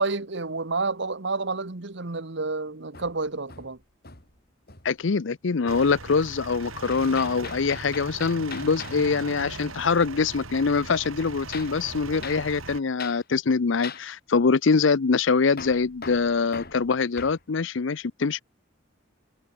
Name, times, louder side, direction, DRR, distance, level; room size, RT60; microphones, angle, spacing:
voice 1, 0.0-3.8, right 3 dB, 60° right, 1.3 m, -29 dB
Hammer, 2.9-4.4 4.7-5.0 6.9-9.0 11.5-11.8 12.2-12.5 13.0-13.2 13.8-14.1 15.6-17.4, left 5 dB, 50° left, 6.2 m, -41 dB
voice 2, 4.8-18.4, left 4 dB, 65° left, 0.6 m, -24 dB
sound 1, 5.7-12.8, right 3 dB, 85° right, 3.5 m, -39 dB
head